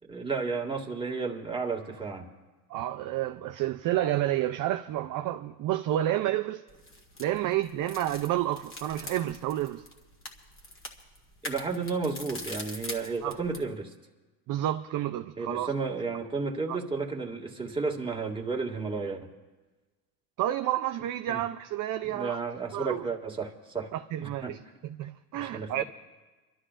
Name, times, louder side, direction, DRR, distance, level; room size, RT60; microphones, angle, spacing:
voice 1, 0.0-2.3 11.4-13.9 15.4-19.3 21.3-21.4 22.0-23.9 24.2-24.6 25.3-25.8, right 4 dB, 10° right, 1.9 m, -32 dB
voice 2, 2.7-6.6 7.2-9.8 13.2-13.4 14.5-15.7 16.7-16.8 20.4-22.4 22.7-23.1 23.9-24.6 24.9-25.8, right 13 dB, 40° right, 0.5 m, -30 dB
sound 1, 6.7-13.7, left 1 dB, 25° left, 1.8 m, -43 dB
29.5 x 12.5 x 2.5 m
supercardioid pair, 85°, 48 cm